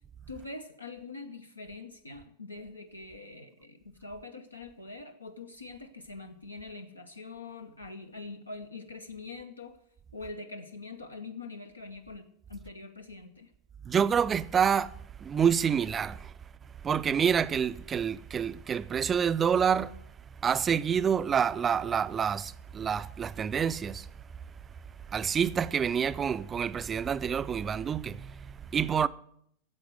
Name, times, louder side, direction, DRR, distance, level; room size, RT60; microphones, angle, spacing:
voice 1, 0.3-9.8 10.1-13.5, left 3 dB, 85° left, 0.9 m, -44 dB
voice 2, 13.8-14.9 15.2-16.3 16.8-19.9 20.4-24.1 25.1-29.1, right 7 dB, 20° right, 0.4 m, -27 dB
10.5 x 7.8 x 9.6 m
figure-of-eight pair, 90°, 0 cm